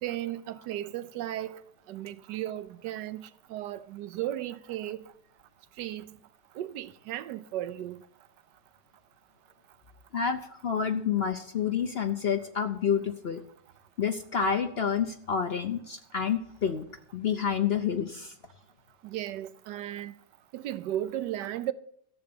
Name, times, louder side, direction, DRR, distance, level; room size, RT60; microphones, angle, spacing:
voice 1, 0.0-1.6 1.9-5.1 5.8-6.2 6.5-8.0 19.0-20.1 20.5-21.7, right 13 dB, 85° right, 1.3 m, -35 dB
voice 2, 10.1-13.4 14.0-16.8 17.1-18.3, left 7 dB, 55° left, 0.7 m, -29 dB
13.5 x 7.8 x 7.0 m
omnidirectional pair, 1.8 m